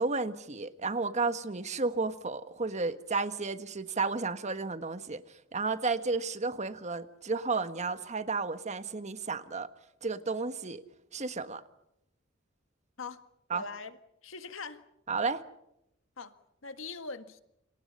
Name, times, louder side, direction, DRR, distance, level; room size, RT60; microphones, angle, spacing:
voice 1, 0.0-5.2 5.5-9.7 10.0-10.8 11.1-11.6 13.5-13.6 15.1-15.4, right 3 dB, 35° right, 11 dB, 1.4 m, -32 dB
voice 2, 13.5-14.0 14.2-14.8 16.2-16.4 16.6-17.4, left 4 dB, 80° left, 10 dB, 1.8 m, -41 dB
29.0 x 27.0 x 5.6 m, 0.81 s
head